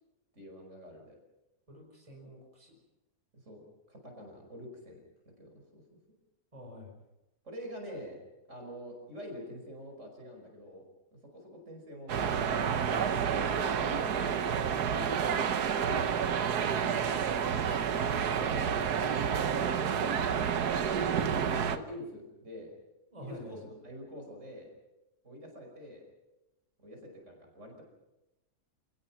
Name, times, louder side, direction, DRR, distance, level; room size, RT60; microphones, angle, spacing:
voice 1, 0.3-1.2 3.3-3.6 3.9-5.0 5.4-5.8 7.4-8.2 8.5-10.8 11.3-12.4 12.8-16.6 18.4-18.9 19.2-20.3 20.8-21.3 21.7-22.7 23.2-24.7 25.2-26.0 26.8-27.8, left 1 dB, 50° right, 2 dB, 5.7 m, -45 dB
voice 2, 1.7-2.8 6.5-7.0 12.9-13.1 23.1-23.6, left 1 dB, 20° right, 1 dB, 5.0 m, -48 dB
sound 1, 12.1-21.8, right 7 dB, 90° right, 1.6 m, -29 dB
28.5 x 18.5 x 6.0 m, 0.98 s
omnidirectional pair, 1.6 m